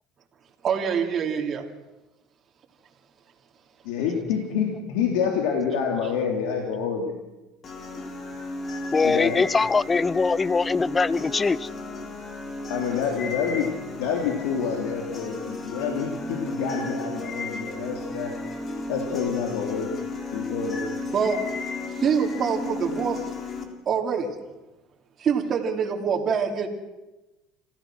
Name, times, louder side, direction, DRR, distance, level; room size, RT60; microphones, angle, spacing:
voice 1, 0.6-1.6 21.1-21.4 22.0-23.2 23.9-24.3 25.2-26.7, right 6 dB, 40° right, 1 dB, 3.0 m, -25 dB
voice 2, 3.8-7.1 9.0-9.4 12.7-13.7 14.0-18.3 18.9-19.9 20.3-20.8, left 7 dB, 85° left, 2 dB, 3.1 m, -27 dB
sound 1, 7.6-23.6, left 2 dB, 40° left, 3.7 m, -34 dB
voice 3, 8.9-11.7, left 4 dB, 20° left, 21 dB, 0.6 m, -22 dB
27.0 x 15.5 x 6.2 m, 1.0 s
supercardioid pair, 105°, 0 cm